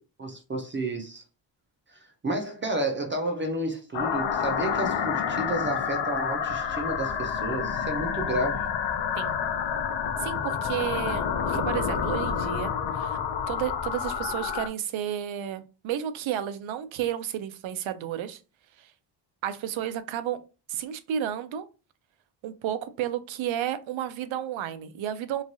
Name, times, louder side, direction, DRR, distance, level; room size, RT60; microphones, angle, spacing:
voice 1, 0.2-1.2 1.9-8.7, right 1 dB, 30° right, 0.4 m, -31 dB
sound 1, 3.9-14.7, left 7 dB, 65° left, 0.5 m, -29 dB
voice 2, 10.2-13.2 13.5-18.4 18.8-18.9 19.4-20.4 20.7-21.7 22.4-25.4, right 10 dB, 85° right, 0.5 m, -32 dB
3.1 x 2.2 x 2.6 m
wide cardioid pair, 170°, 45 cm